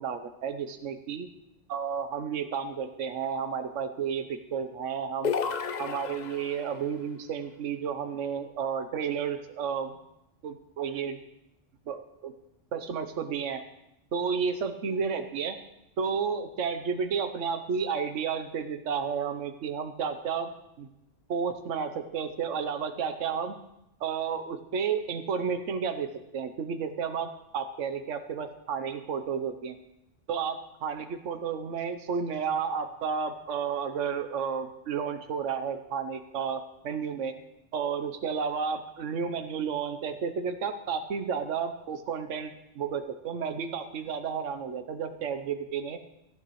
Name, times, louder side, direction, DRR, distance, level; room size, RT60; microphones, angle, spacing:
voice 1, 0.0-1.3 1.7-5.3 5.8-10.0 10.4-11.2 11.9-12.3 12.7-13.6 14.1-15.6 16.0-20.5 20.8-20.9 21.3-23.5 24.0-29.8 30.3-37.3 37.7-46.0, right 6 dB, 80° right, 8 dB, 1.2 m, -32 dB
sound 1, 5.2-6.8, left 6 dB, 45° left, 0.7 m, -32 dB
18.0 x 14.0 x 3.2 m, 0.85 s
omnidirectional pair, 1.3 m